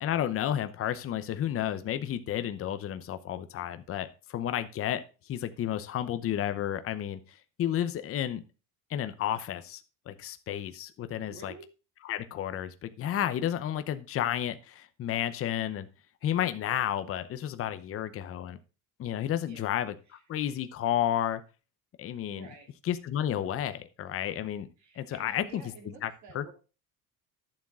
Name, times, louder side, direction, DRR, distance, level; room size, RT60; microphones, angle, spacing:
voice 1, 0.0-5.0 5.3-7.2 7.6-8.4 8.9-9.8 10.1-11.5 12.0-15.9 16.2-18.6 19.0-19.9 20.3-21.4 22.0-22.5 22.8-24.7 25.0-25.6 26.0-26.4, left 11 dB, 35° left, 11 dB, 0.8 m, -31 dB
voice 2, 11.2-11.6 19.4-19.8 20.1-20.2 22.3-22.7 24.8-26.5, right 4 dB, 45° right, 3 dB, 2.9 m, -50 dB
11.0 x 7.4 x 3.7 m, 0.32 s
cardioid pair, 145°, 39 cm